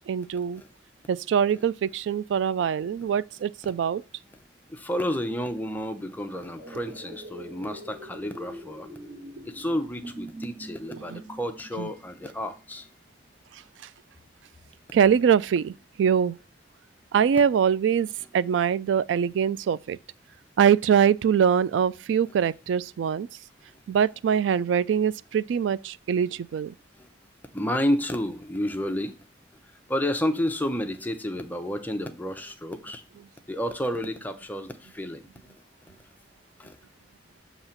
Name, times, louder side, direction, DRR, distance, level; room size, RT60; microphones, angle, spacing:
voice 1, 0.1-0.6 1.1-4.0 10.9-11.2 11.8-11.9 14.9-15.7 16.0-16.4 17.1-18.1 18.3-20.0 20.6-23.3 23.9-26.7, right 7 dB, 85° right, 0.3 m, -23 dB
voice 2, 4.7-8.9 9.5-12.9 27.0-27.1 27.5-29.1 29.9-33.0 33.5-35.3 35.9-36.0 36.6-36.8, equal, 10° left, 0.6 m, -30 dB
sound 1, 6.6-12.7 13.1-13.2, right 1 dB, 30° right, 1.6 m, -43 dB
7.1 x 2.9 x 5.6 m
head